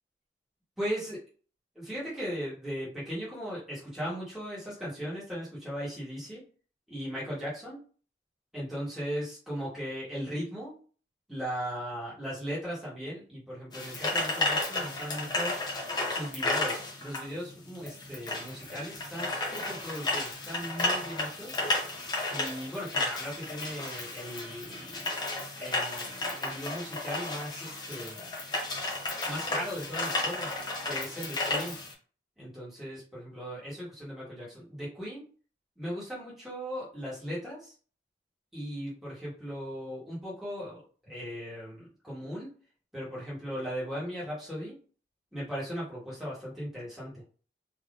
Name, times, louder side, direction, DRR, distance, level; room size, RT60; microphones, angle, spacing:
voice 1, 0.8-1.2 1.7-6.4 6.9-7.8 8.5-10.7 11.3-15.6 16.1-21.6 22.3-25.1 25.6-28.3 29.3-30.5 30.8-31.8 32.4-35.2 35.8-37.7 38.5-42.5 42.9-44.8 45.3-47.2, equal, ahead, -9 dB, 1.4 m, -38 dB
sound 1, 13.7-31.9, left 2 dB, 25° left, 0.8 m, -33 dB
3.5 x 2.8 x 2.5 m, 0.40 s
head